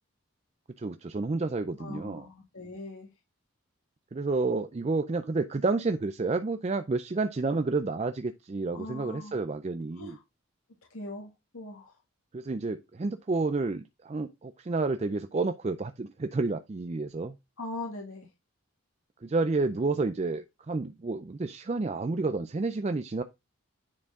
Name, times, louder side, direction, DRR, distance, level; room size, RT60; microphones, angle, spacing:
voice 1, 0.8-2.3 4.1-10.2 12.3-17.4 19.2-23.2, right 3 dB, 30° right, 0.4 m, -30 dB
voice 2, 1.8-3.1 8.7-9.3 10.0-10.2 10.9-11.9 17.6-18.3, left 2 dB, 85° left, 2.3 m, -40 dB
9.6 x 4.4 x 3.6 m
head